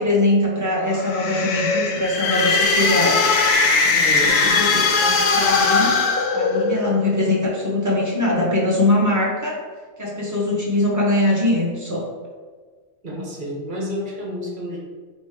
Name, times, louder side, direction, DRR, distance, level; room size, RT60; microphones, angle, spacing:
voice 1, 0.0-3.2 3.8-6.0 6.3-9.6 10.0-12.1, left 1 dB, 15° right, -4 dB, 0.7 m, -22 dB
sound 1, 0.9-7.0, left 4 dB, 65° left, 0.7 m, -19 dB
voice 2, 4.0-4.4 13.0-14.8, equal, 45° right, -3 dB, 1.0 m, -30 dB
3.2 x 3.1 x 4.7 m, 1.5 s
omnidirectional pair, 1.3 m